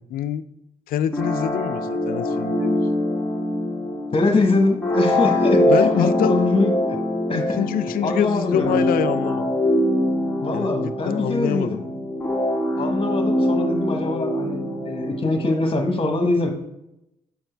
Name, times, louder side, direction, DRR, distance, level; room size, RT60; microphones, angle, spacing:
voice 1, 0.1-0.4 0.9-3.2 5.7-6.3 7.3-9.5 10.5-10.8 11.0-11.8, left 10 dB, 75° left, 12 dB, 0.4 m, -25 dB
sound 1, 1.1-15.7, left 1 dB, 5° left, 1.4 m, -23 dB
voice 2, 4.1-6.7 7.3-7.6 8.0-8.8 10.4-11.8 12.8-16.5, left 2 dB, 40° left, 4 dB, 1.3 m, -23 dB
6.8 x 4.4 x 3.4 m, 0.87 s
supercardioid pair, 55°, 15 cm